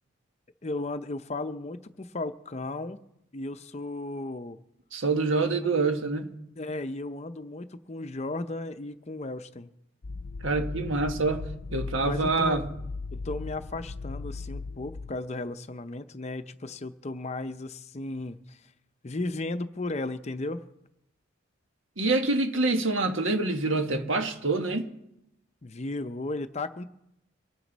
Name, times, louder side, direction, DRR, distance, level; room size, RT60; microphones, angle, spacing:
voice 1, 0.6-3.0 3.3-4.6 6.6-9.7 12.0-12.6 13.1-18.6 19.0-20.6 25.6-26.8, left 2 dB, 30° left, 0.6 m, -35 dB
voice 2, 4.9-6.3 10.4-12.7 22.0-24.9, right 3 dB, 70° right, 1.5 m, -26 dB
sound 1, 10.0-15.1, left 3 dB, 75° left, 0.6 m, -37 dB
24.0 x 9.4 x 4.1 m
head